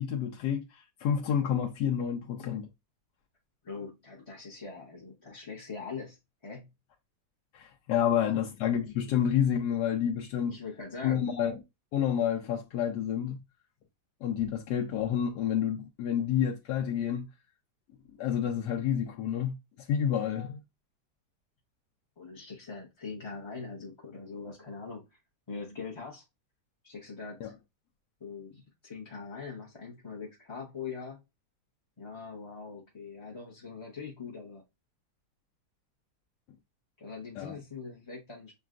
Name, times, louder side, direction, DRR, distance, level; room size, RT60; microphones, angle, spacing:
voice 1, 0.0-2.7 7.5-10.6 11.0-11.6 11.9-13.4 14.2-17.3 18.2-19.6 19.9-20.6 27.4-27.5 37.4-37.5, left 9 dB, 85° left, 1.2 m, -29 dB
voice 2, 3.6-6.7 8.2-8.5 10.5-11.3 22.2-25.0 25.5-26.2 26.8-27.5 28.2-31.2 32.0-34.6 37.0-38.5, left 4 dB, 25° left, 0.6 m, -42 dB
6.5 x 2.3 x 2.4 m
omnidirectional pair, 1.8 m